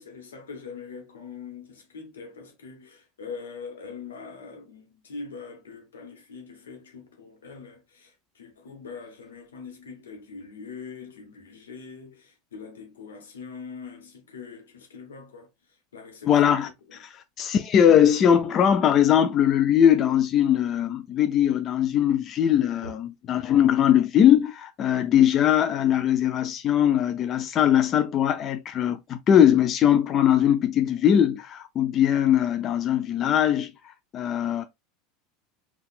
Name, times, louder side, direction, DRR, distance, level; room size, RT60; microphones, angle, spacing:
voice 1, 0.0-17.0 22.8-22.9, left 5 dB, 90° left, 0.9 m, -42 dB
voice 2, 16.3-34.6, left 9 dB, 40° left, 0.3 m, -21 dB
4.0 x 2.3 x 2.4 m
hypercardioid pair, 90°, 0 cm